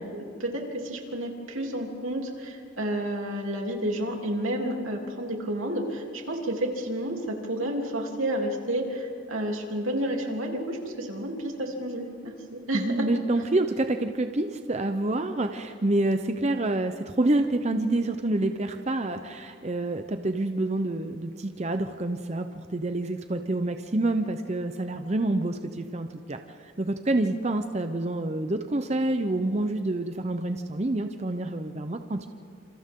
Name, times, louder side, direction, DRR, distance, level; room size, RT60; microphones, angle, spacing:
voice 1, 0.1-12.8, right 1 dB, 85° right, 0 dB, 3.3 m, -31 dB
voice 2, 12.7-32.3, right 2 dB, 35° right, 7 dB, 0.7 m, -27 dB
28.5 x 27.5 x 3.8 m, 2.4 s
head